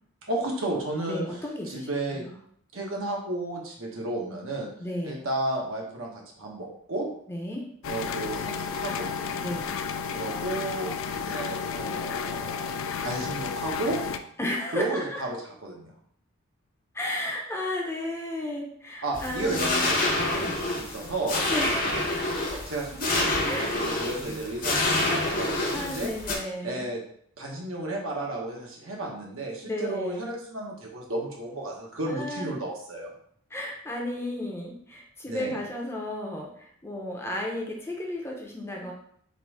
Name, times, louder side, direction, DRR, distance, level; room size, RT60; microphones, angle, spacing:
voice 1, 0.2-1.2 1.7-2.3 2.7-4.7 5.0-7.1 7.8-9.1 10.1-14.0 14.7-15.9 19.0-21.5 22.7-26.1 26.6-27.0 27.4-33.1 35.3-35.5, right 2 dB, 75° right, -1 dB, 1.1 m, -33 dB
voice 2, 1.1-2.4 4.8-5.2 7.3-7.6 9.4-9.7 14.4-15.2 16.9-19.8 21.5-21.9 22.5-22.6 23.5-23.8 25.7-26.9 29.6-30.2 32.1-32.6 33.5-38.9, left 1 dB, 10° left, 0 dB, 0.6 m, -33 dB
sound 1, 7.8-14.2, left 6 dB, 70° left, 0.4 m, -32 dB
sound 2, 19.1-26.4, left 2 dB, 40° left, 0.8 m, -27 dB
4.0 x 2.6 x 4.8 m, 0.65 s
head